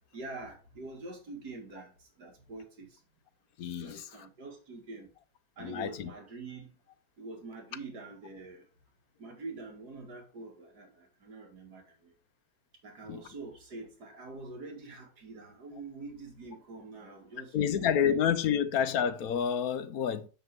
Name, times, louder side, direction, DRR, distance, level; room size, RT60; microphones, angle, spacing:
voice 1, 0.1-3.0 3.8-5.1 5.6-6.8 7.2-8.7 9.2-12.1 12.8-18.1 18.5-18.6, right 3 dB, 85° right, 2.5 m, -45 dB
voice 2, 3.6-4.1 5.6-6.1 13.1-13.2 17.5-20.3, left 8 dB, 70° left, 1.2 m, -29 dB
7.2 x 6.8 x 3.6 m
omnidirectional pair, 1.7 m